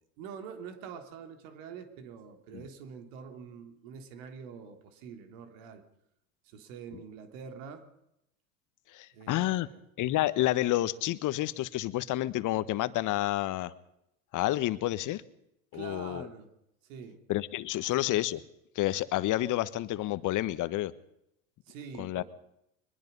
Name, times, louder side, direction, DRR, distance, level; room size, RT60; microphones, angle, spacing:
voice 1, 0.2-5.8 6.4-7.8 9.1-9.8 15.7-16.5 16.8-17.2 18.0-18.1 21.7-22.2, right 6 dB, 65° right, 7 dB, 3.4 m, -45 dB
voice 2, 8.9-9.7 10.0-13.7 14.3-15.2 15.7-16.3 17.3-18.4 18.7-20.9 22.0-22.2, left 15 dB, 45° left, 15 dB, 1.4 m, -29 dB
23.0 x 21.5 x 5.5 m, 0.81 s
hypercardioid pair, 90°, 41 cm